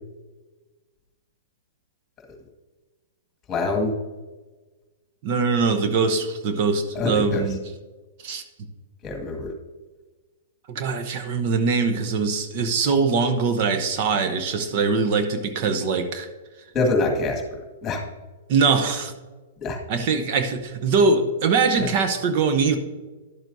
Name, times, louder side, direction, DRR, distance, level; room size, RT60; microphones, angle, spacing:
voice 1, 3.5-3.9 6.9-7.4 9.0-9.5 16.7-17.4 17.8-18.0 19.6-19.8 21.8-21.9, left 3 dB, 20° left, 2 dB, 1.9 m, -24 dB
voice 2, 5.2-7.6 8.2-8.4 10.7-16.3 18.5-19.1 19.9-22.8, right 4 dB, 50° right, 7 dB, 0.8 m, -22 dB
11.5 x 7.2 x 2.7 m, 1.2 s
hypercardioid pair, 130°, 0 cm